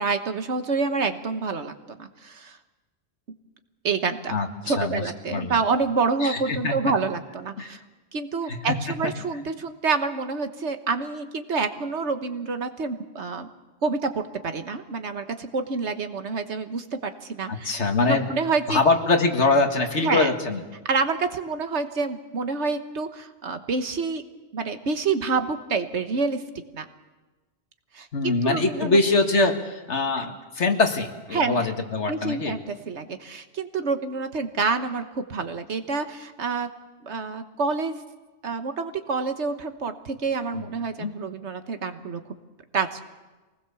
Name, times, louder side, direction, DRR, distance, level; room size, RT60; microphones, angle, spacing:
voice 1, 0.0-2.6 3.3-3.4 3.8-4.3 4.6-7.8 8.1-13.5 13.8-17.8 18.1-18.8 20.0-20.3 20.8-24.2 24.5-26.4 26.7-26.8 27.9-29.0 30.2-30.3 31.3-31.7 32.1-36.7 37.0-38.0 38.4-42.2 42.7-43.0, right 4 dB, 70° right, 8 dB, 1.5 m, -27 dB
voice 2, 4.3-5.0 5.3-5.6 6.2-6.7 7.6-7.7 8.5-8.6 17.5-18.3 18.7-20.6 28.1-32.5 40.5-40.7 41.0-41.1, left 3 dB, 70° left, 4 dB, 2.1 m, -23 dB
24.5 x 19.5 x 7.0 m, 1.2 s
omnidirectional pair, 1.2 m